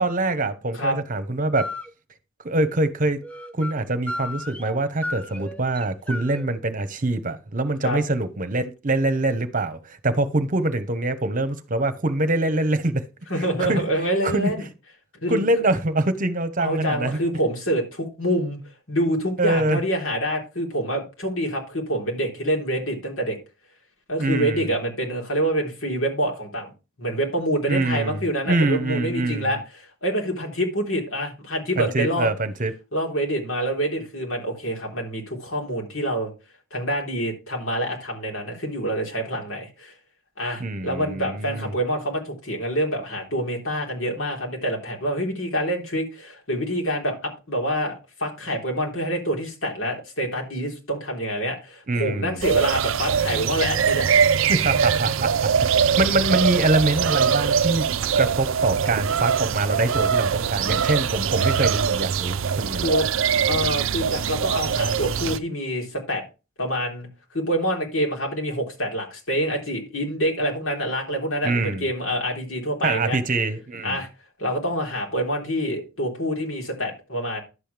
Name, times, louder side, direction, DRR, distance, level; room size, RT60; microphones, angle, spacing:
voice 1, 0.0-1.7 2.4-3.2 3.5-13.0 13.6-13.8 14.2-14.5 15.3-17.2 19.4-19.8 24.2-24.7 27.7-29.6 31.8-32.7 40.6-41.7 51.9-52.4 54.5-57.9 58.1-62.9 71.4-71.9 72.8-74.0, right 2 dB, 40° right, 1.0 m, -24 dB
sound 1, 1.6-1.9 3.2-3.8 4.1-4.8 5.0-6.5, left 1 dB, 5° left, 0.7 m, -33 dB
voice 2, 13.3-14.6 15.2-15.4 16.6-18.6 18.9-23.4 24.1-26.7 27.0-32.3 32.9-36.3 36.7-39.9 40.4-47.9 48.2-54.1 62.8-63.1 63.5-66.2 66.6-67.1 67.3-73.2 73.8-74.1 74.4-77.4, equal, 70° left, 3.7 m, -26 dB
sound 2, 52.4-65.4, right 7 dB, 70° right, 0.5 m, -22 dB
11.0 x 7.7 x 3.4 m
head